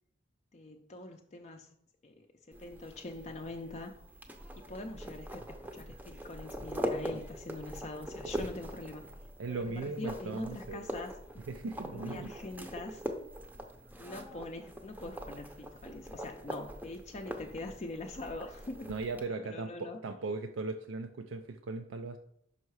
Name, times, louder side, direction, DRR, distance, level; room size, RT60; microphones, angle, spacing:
voice 1, 0.5-1.7 2.0-3.9 4.6-9.0 9.5-11.4 11.9-13.0 14.0-20.0, left 2 dB, 35° left, 3 dB, 0.5 m, -44 dB
sound 1, 2.5-19.3, equal, 10° right, 0.6 m, -42 dB
voice 2, 9.4-10.8 11.5-12.3 18.9-22.2, right 3 dB, 80° right, 6 dB, 0.4 m, -38 dB
5.6 x 5.5 x 4.7 m, 0.74 s
head